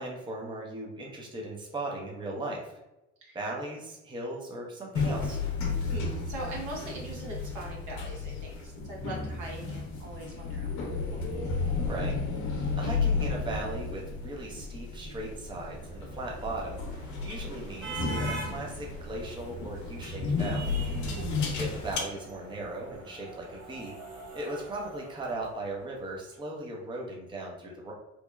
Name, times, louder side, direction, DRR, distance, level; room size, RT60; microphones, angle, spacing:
voice 1, 0.0-2.8 3.3-5.4 11.8-12.2 12.4-20.8 21.6-23.9 24.3-27.9, right 2 dB, 15° right, -2 dB, 0.6 m, -38 dB
sound 1, 4.9-22.0, left 4 dB, 60° left, 0.7 m, -33 dB
voice 2, 5.8-11.2, right 2 dB, 60° right, -2 dB, 1.0 m, -41 dB
sound 2, 15.8-26.0, right 2 dB, 85° right, 1.0 m, -44 dB
2.9 x 2.1 x 2.2 m, 0.94 s
hypercardioid pair, 60°, 34 cm